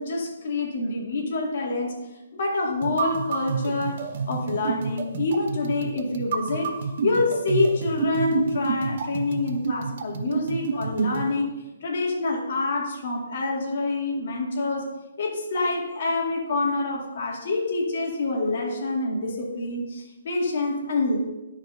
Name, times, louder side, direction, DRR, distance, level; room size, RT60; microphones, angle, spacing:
voice 1, 0.0-1.9 2.3-4.0 4.3-6.7 7.0-14.9 15.2-21.2, left 3 dB, 55° left, 0 dB, 2.2 m, -26 dB
sound 1, 2.8-11.3, right 5 dB, 55° right, 0.9 m, -29 dB
10.5 x 4.8 x 5.2 m, 1.1 s
hypercardioid pair, 140°, 0 cm